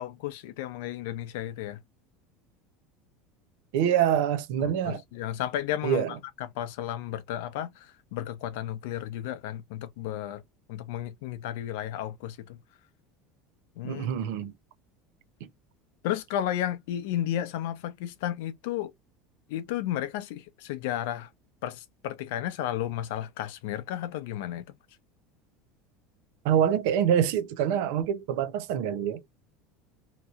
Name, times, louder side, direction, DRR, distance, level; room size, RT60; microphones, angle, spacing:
voice 1, 0.0-1.8 4.6-6.0 6.4-10.4 10.7-12.6 13.8-14.1 16.0-18.9 19.5-21.3 21.6-24.7, left 12 dB, 75° left, 0.6 m, -33 dB
voice 2, 3.7-5.0 5.8-6.2 13.8-14.5 15.4-15.5 26.4-29.2, right 9 dB, 65° right, 0.6 m, -25 dB
2.9 x 2.7 x 2.4 m
cardioid pair, 170°, 0 cm